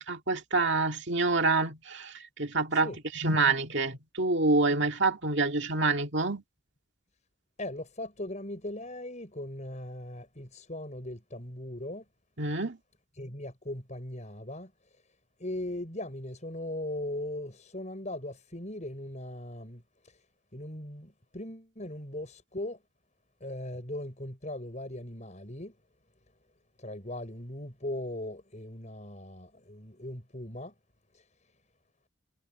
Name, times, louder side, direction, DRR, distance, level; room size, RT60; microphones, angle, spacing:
voice 1, 0.0-2.9 3.2-6.4 12.4-12.8, right 3 dB, 55° right, 2.2 m, -27 dB
voice 2, 7.6-12.0 13.2-15.0 15.4-20.2 20.5-22.8 23.4-25.8 26.8-30.7 31.1-31.3, left 1 dB, 35° left, 6.3 m, -39 dB
head